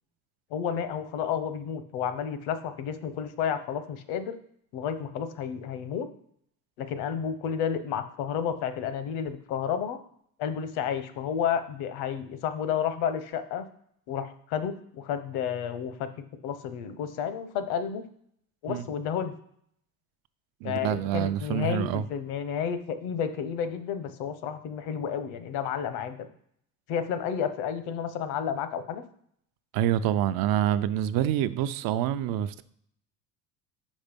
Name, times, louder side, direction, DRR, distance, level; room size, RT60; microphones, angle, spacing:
voice 1, 0.5-4.4 4.7-6.1 6.8-10.0 10.4-13.7 14.1-16.1 16.4-18.0 18.6-19.3 20.6-26.3 26.9-29.0, left 8 dB, 80° left, 0.9 m, -31 dB
voice 2, 20.6-22.1 29.7-32.6, right 10 dB, 65° right, 0.6 m, -27 dB
5.4 x 5.1 x 5.3 m
cardioid pair, 120°, 38 cm